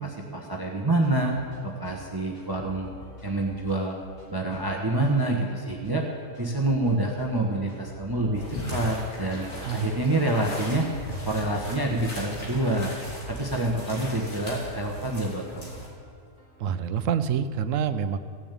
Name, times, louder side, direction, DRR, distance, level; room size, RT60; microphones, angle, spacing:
voice 1, 0.0-1.3 1.6-2.9 3.2-3.9 4.3-6.0 6.4-10.9 11.3-12.9 13.3-15.7, right 2 dB, 20° right, 0 dB, 1.2 m, -27 dB
sound 1, 1.0-17.0, left 1 dB, 65° left, 3.1 m, -50 dB
sound 2, 8.3-15.9, equal, 80° left, 3.6 m, -38 dB
voice 2, 9.7-10.0 16.6-18.2, right 7 dB, 75° right, 11 dB, 1.0 m, -27 dB
16.0 x 7.2 x 8.4 m, 2.2 s
omnidirectional pair, 1.4 m